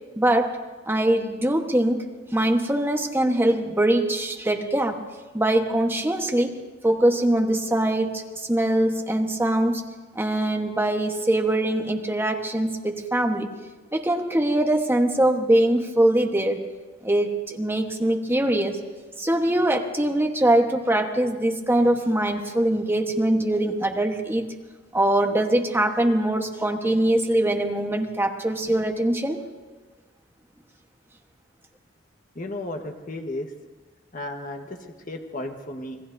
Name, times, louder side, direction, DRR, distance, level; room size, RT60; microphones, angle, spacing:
voice 1, 0.2-0.6 0.8-5.0 5.3-6.6 6.8-9.9 10.1-13.5 13.9-16.6 17.0-18.8 19.2-24.5 24.9-29.4, right 1 dB, 10° right, 3 dB, 1.2 m, -22 dB
voice 2, 32.3-33.5 34.1-36.1, left 1 dB, 45° left, 3 dB, 1.4 m, -34 dB
27.0 x 20.0 x 2.7 m, 1.3 s
head